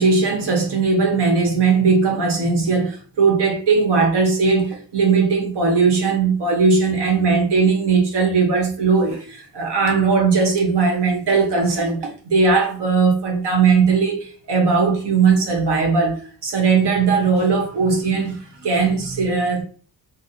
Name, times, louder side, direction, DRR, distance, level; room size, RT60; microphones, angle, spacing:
voice 1, 0.0-19.6, right 4 dB, 90° right, 1.0 m, -18 dB
3.9 x 2.0 x 2.6 m
cardioid pair, 80°, 40 cm